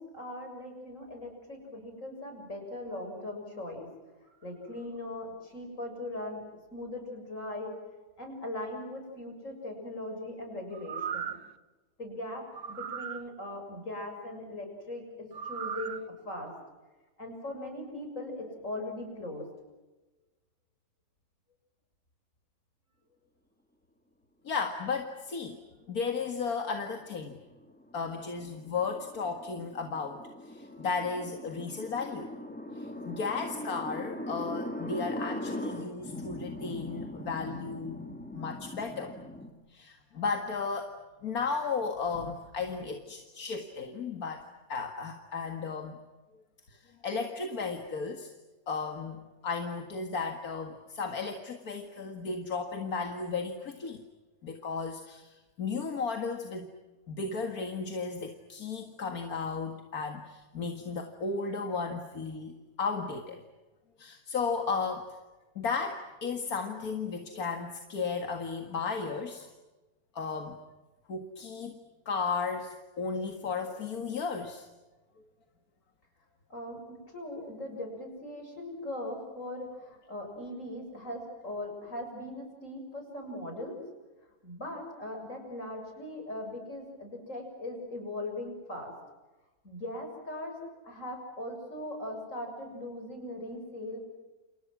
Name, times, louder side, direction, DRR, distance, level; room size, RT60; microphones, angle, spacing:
voice 1, 0.0-3.9 4.4-6.4 6.7-7.8 8.2-11.4 12.0-16.5 17.2-19.5 76.5-83.8 84.4-88.9 89.6-94.0, left 1 dB, 60° left, 3 dB, 7.2 m, -40 dB
sound 1, 10.7-11.5 12.5-13.2 15.3-16.0 16.5-16.6, right 7 dB, 90° right, 1.6 m, -37 dB
voice 2, 24.4-25.6 25.9-27.4 27.9-32.3 32.7-38.0 38.3-39.1 39.7-41.0 41.2-46.0 46.7-48.3 48.7-54.0 54.4-56.7 57.1-63.4 64.0-65.1 65.6-69.5 70.1-70.6 71.1-71.8 72.1-74.7, left 5 dB, 80° left, 5 dB, 2.4 m, -34 dB
sound 2, 27.1-39.5, left 1 dB, 5° left, 2.7 m, -40 dB
29.5 x 29.0 x 6.2 m, 1.2 s
omnidirectional pair, 1.5 m